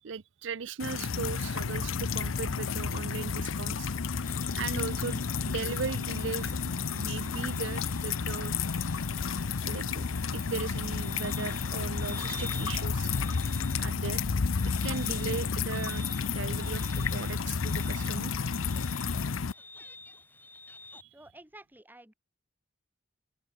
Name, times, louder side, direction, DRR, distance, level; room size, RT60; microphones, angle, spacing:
voice 1, 0.0-3.9 4.5-8.5 9.6-13.1 13.8-16.0 16.3-18.9 20.9-21.1, right 5 dB, 70° right, 0.5 m, -38 dB
sound 1, 0.8-19.5, left 5 dB, 90° left, 0.7 m, -31 dB
sound 2, 4.2-21.0, left 2 dB, 10° left, 4.2 m, -49 dB
voice 2, 21.1-22.1, right 1 dB, 10° right, 3.6 m, -51 dB
open air
head